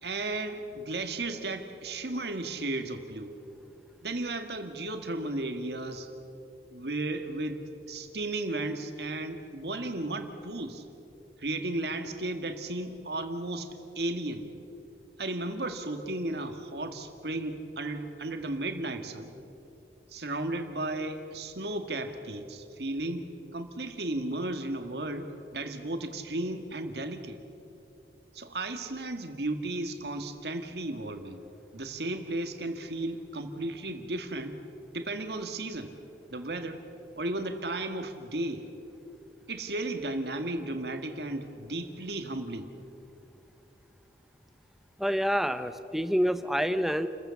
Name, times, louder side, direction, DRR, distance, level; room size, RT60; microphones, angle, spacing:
voice 1, 0.0-3.4 4.0-6.1 6.7-7.6 7.9-10.8 11.4-13.7 14.0-14.5 15.2-19.3 20.1-23.3 23.5-27.4 28.3-31.4 31.7-34.5 34.9-36.0 36.3-36.8 37.2-38.7 39.5-42.7, right 2 dB, 70° right, 6 dB, 1.8 m, -34 dB
voice 2, 45.0-47.1, equal, ahead, 10 dB, 0.7 m, -27 dB
29.5 x 15.0 x 7.1 m, 2.8 s
head